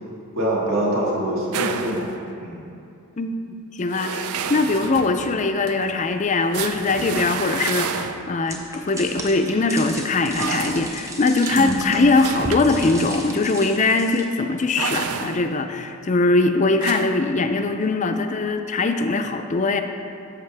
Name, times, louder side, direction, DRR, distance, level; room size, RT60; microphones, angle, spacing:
voice 1, 0.4-2.1 2.4-2.6 11.5-11.9, right 1 dB, 65° right, -5 dB, 1.7 m, -24 dB
sound 1, 1.5-2.3 3.9-8.5 10.3-11.1 11.5-13.2 14.8-15.7 16.8-17.3, right 6 dB, 85° right, 0.4 m, -31 dB
voice 2, 3.7-19.8, left 3 dB, 35° left, 7 dB, 0.4 m, -21 dB
sound 2, 8.5-14.2, right 1 dB, 15° right, 0.8 m, -35 dB
10.5 x 7.0 x 3.4 m, 2.6 s
head